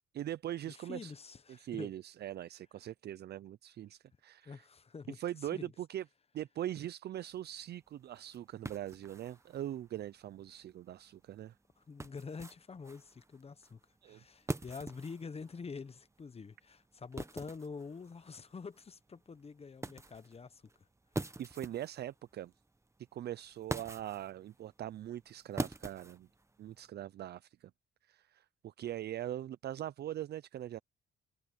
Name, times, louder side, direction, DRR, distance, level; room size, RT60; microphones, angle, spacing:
voice 1, 0.1-1.1 1.5-4.7 5.1-6.0 6.3-11.5 14.0-14.2 21.4-22.5 23.1-26.3 26.6-27.7 28.1-30.8, right 12 dB, 55° right, 0.5 m, -41 dB
voice 2, 0.7-1.9 4.4-5.2 5.5-5.7 11.8-20.6, left 5 dB, 30° left, 1.0 m, -46 dB
sound 1, 7.3-26.9, right 2 dB, 15° right, 1.2 m, -46 dB
cardioid pair, 90°, 20 cm